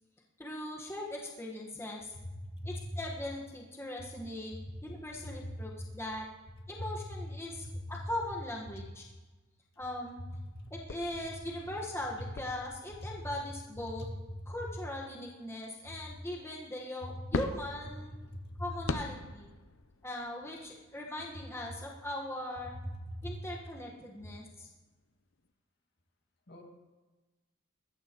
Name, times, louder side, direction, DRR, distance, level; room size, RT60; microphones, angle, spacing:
voice 1, 0.4-2.1 2.6-6.3 6.7-9.0 9.8-10.2 10.7-14.1 14.5-18.1 18.6-19.5 20.0-22.7 23.2-24.7, left 1 dB, 15° left, -3 dB, 1.4 m, -40 dB
voice 2, 2.2-3.0 4.5-4.6 5.2-5.7 6.8-7.2 7.7-7.8 10.6-10.7 14.0-14.1 18.3-18.6 22.9-23.4 26.5-26.6, equal, 55° left, 2 dB, 2.2 m, -41 dB
sound 1, 9.8-9.9 10.7-13.8 17.3-23.3 23.9-24.5 24.8-24.9 25.3-25.5, left 3 dB, 85° left, 0.7 m, -42 dB
21.0 x 15.0 x 3.1 m, 1.2 s
head